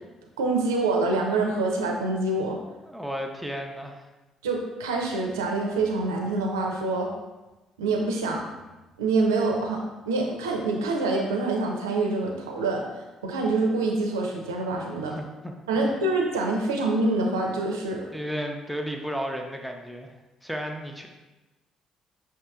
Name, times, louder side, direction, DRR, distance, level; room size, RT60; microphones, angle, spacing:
voice 1, 0.4-2.6 4.4-7.1 7.8-8.5 9.0-12.8 13.2-15.1 15.7-18.1, right 3 dB, 75° right, 0 dB, 0.5 m, -26 dB
voice 2, 2.9-4.1 15.0-15.9 18.1-20.1 20.4-21.1, equal, ahead, 2 dB, 0.6 m, -34 dB
6.4 x 2.8 x 2.3 m, 1.1 s
figure-of-eight pair, 45°, 2 cm